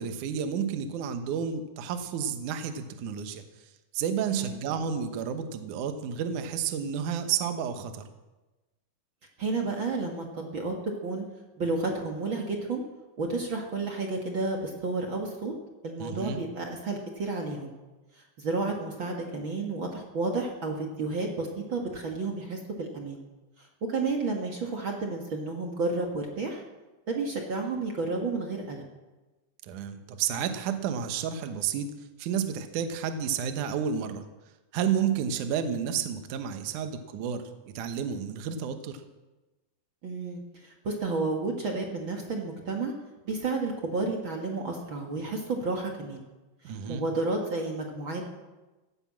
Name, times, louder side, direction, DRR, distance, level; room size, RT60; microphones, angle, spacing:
voice 1, 0.0-3.4 3.9-8.0 16.0-16.4 29.6-31.9 32.2-34.2 34.7-39.0 46.6-47.0, right 7 dB, 65° right, 8 dB, 2.3 m, -31 dB
voice 2, 9.4-11.3 11.6-12.8 13.2-15.6 15.8-17.7 18.1-23.2 23.6-26.6 27.1-28.8 40.0-42.9 43.2-46.2 46.6-48.3, right 3 dB, 50° right, 1 dB, 1.6 m, -31 dB
17.0 x 9.8 x 7.4 m, 1.1 s
omnidirectional pair, 4.4 m